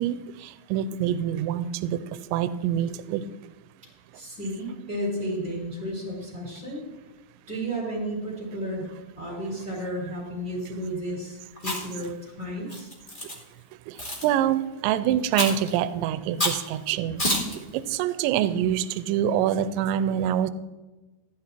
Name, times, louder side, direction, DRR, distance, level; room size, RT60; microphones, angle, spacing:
voice 1, 0.0-2.0 2.3-3.2 13.9-14.0 14.2-17.2 17.7-20.5, right 10 dB, 85° right, 14 dB, 2.9 m, -25 dB
voice 2, 4.1-6.9 7.5-12.9, equal, ahead, -4 dB, 4.0 m, -33 dB
Chewing mastication, 11.6-12.0 12.7-13.3 14.0-14.3 15.3-15.7 16.4-16.6 17.2-17.5, left 1 dB, 15° left, 1.9 m, -27 dB
15.5 x 11.0 x 4.5 m, 1.1 s
omnidirectional pair, 5.1 m